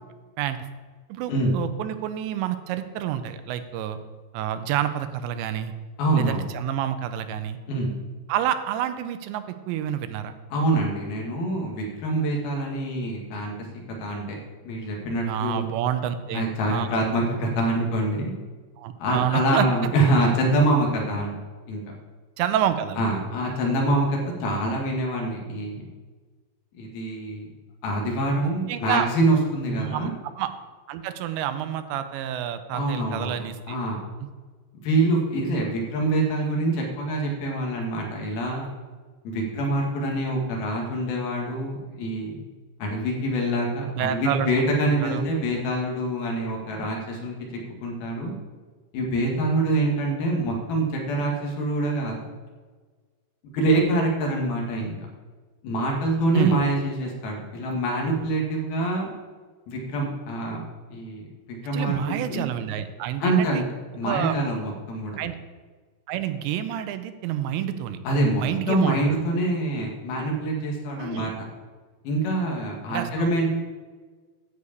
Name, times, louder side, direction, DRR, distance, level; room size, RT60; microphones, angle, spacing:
voice 1, 1.1-4.0 4.3-5.7 6.2-7.6 8.3-10.3 15.3-17.1 18.8-19.7 22.4-23.1 28.4-29.1 29.8-30.1 30.4-30.5 30.9-33.8 34.2-34.3 44.0-44.6 44.9-45.3 56.3-56.6 61.7-63.6 64.0-64.4 65.2-65.4 66.1-68.0 68.4-69.2 71.0-71.3 72.9-73.3, right 10 dB, 85° right, 10 dB, 2.9 m, -28 dB
voice 2, 6.0-6.4 7.7-7.9 10.5-13.5 14.0-14.4 14.6-15.7 16.3-18.3 19.0-21.4 21.7-21.8 23.0-25.8 26.8-27.5 27.8-30.1 32.7-33.4 33.7-34.0 34.7-38.7 39.2-42.4 42.8-47.4 47.8-48.3 48.9-52.2 53.4-55.0 55.6-59.1 59.7-60.6 60.9-61.2 61.6-62.5 63.2-63.6 63.9-65.2 68.0-68.4 68.7-71.5 72.0-73.5, right 1 dB, 65° left, 0 dB, 3.3 m, -25 dB
10.5 x 4.9 x 8.2 m, 1.4 s
omnidirectional pair, 5.1 m